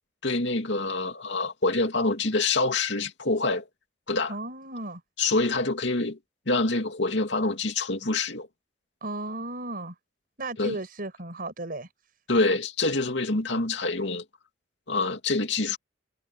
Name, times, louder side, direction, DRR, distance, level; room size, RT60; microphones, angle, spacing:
voice 1, 0.2-3.6 4.1-4.3 5.2-6.2 6.5-8.5 10.6-10.8 12.3-14.2 14.9-15.8, left 3 dB, 65° left, 2.8 m, -26 dB
voice 2, 4.3-5.0 9.0-9.9 10.4-11.9, right 2 dB, 50° right, 5.7 m, -34 dB
head